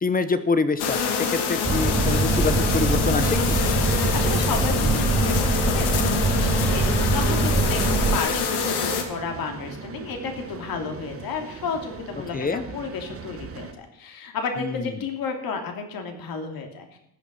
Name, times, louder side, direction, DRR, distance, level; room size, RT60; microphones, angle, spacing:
voice 1, 0.0-3.6 12.3-12.6 14.6-14.9, left 4 dB, 25° left, 11 dB, 1.0 m, -26 dB
sound 1, 0.8-9.0, left 6 dB, 80° left, 2.4 m, -26 dB
sound 2, 1.6-8.2, right 3 dB, 10° right, 2.5 m, -23 dB
voice 2, 3.9-12.4 12.7-17.0, left 5 dB, 65° left, 3 dB, 3.0 m, -32 dB
sound 3, 6.3-13.7, right 5 dB, 35° right, 1.4 m, -39 dB
14.5 x 9.3 x 5.5 m, 0.79 s
cardioid pair, 135°, 38 cm